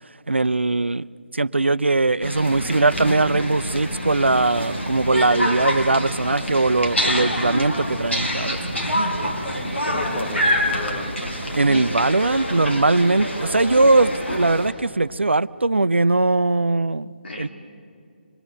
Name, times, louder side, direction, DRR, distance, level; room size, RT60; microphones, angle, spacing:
voice 1, 0.3-1.1 1.3-8.6 11.5-17.1 17.4-17.5, right 2 dB, 80° right, 17 dB, 0.6 m, -20 dB
sound 1, 2.2-14.7, equal, 85° left, 4.2 m, -26 dB
voice 2, 9.8-11.1 17.2-17.5, left 1 dB, 65° left, 3 dB, 3.6 m, -32 dB
25.5 x 22.5 x 8.2 m, 2.5 s
figure-of-eight pair, 145°, 6 cm